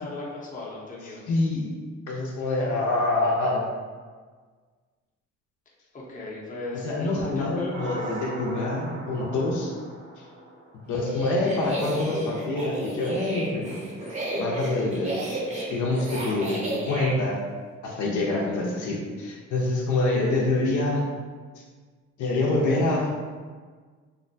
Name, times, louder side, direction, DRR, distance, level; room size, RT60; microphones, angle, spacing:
voice 1, 0.0-1.2 5.9-7.7 8.2-8.3, left 2 dB, 25° left, -4 dB, 0.7 m, -36 dB
voice 2, 1.3-1.7 2.1-3.7 6.8-9.7 10.9-13.8 14.3-15.1 15.5-17.4 17.8-21.0 22.2-23.1, left 2 dB, 75° left, -3 dB, 0.6 m, -26 dB
sound 1, 7.7-11.1, right 1 dB, 90° right, 0.6 m, -37 dB
sound 2, 10.9-17.1, right 2 dB, 25° right, 0.7 m, -33 dB
2.5 x 2.2 x 2.6 m, 1.5 s
cardioid pair, 90°, 30 cm